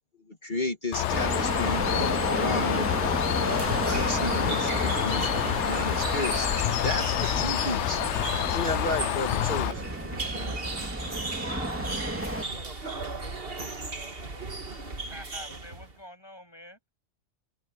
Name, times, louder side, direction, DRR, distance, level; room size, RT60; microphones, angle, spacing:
voice 1, 0.3-8.1 8.5-9.8, left 2 dB, 45° left, 2.5 m, -33 dB
Bird, 0.9-9.7, left 13 dB, 85° left, 0.9 m, -28 dB
sound 1, 1.1-12.4, right 1 dB, 10° right, 2.8 m, -32 dB
sound 2, 3.5-16.0, right 3 dB, 55° right, 2.3 m, -36 dB
voice 2, 11.8-14.2, equal, 35° right, 5.2 m, -50 dB
voice 3, 15.1-16.9, equal, 20° left, 7.5 m, -47 dB
omnidirectional pair, 1.2 m